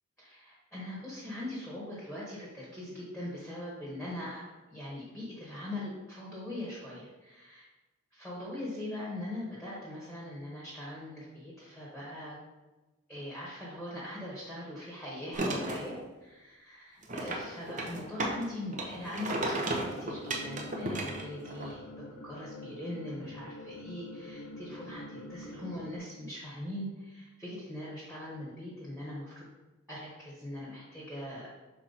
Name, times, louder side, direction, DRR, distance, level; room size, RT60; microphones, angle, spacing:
voice 1, 0.2-7.7 8.1-12.4 13.1-29.5 29.9-31.6, left 1 dB, ahead, -6 dB, 1.3 m, -41 dB
sound 1, 15.3-15.9 17.0-18.4 18.7-21.7, right 2 dB, 35° right, 0.8 m, -34 dB
sound 2, 19.8-26.0, left 1 dB, 80° left, 1.0 m, -46 dB
5.7 x 4.4 x 4.0 m, 1.1 s
head